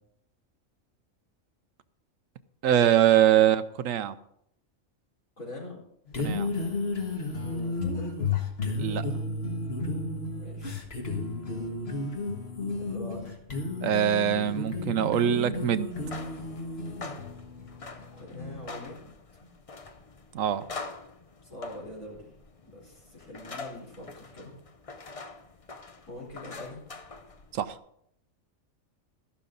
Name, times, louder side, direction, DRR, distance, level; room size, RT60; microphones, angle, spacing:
voice 1, 2.6-4.1 6.2-6.5 8.8-9.1 13.8-15.9 20.3-20.6 27.5-27.8, right 10 dB, 75° right, 13 dB, 1.0 m, -23 dB
voice 2, 5.4-5.8 7.4-8.3 10.3-10.8 12.7-13.3 18.2-19.5 21.4-22.3 22.6-24.5 26.1-26.8, left 2 dB, 80° left, -2 dB, 4.5 m, -43 dB
sound 1, 6.1-18.7, left 3 dB, 50° left, 1.9 m, -33 dB
sound 2, 15.8-27.7, left 3 dB, 35° left, 0.7 m, -44 dB
13.5 x 11.5 x 4.0 m, 0.72 s
omnidirectional pair, 1.4 m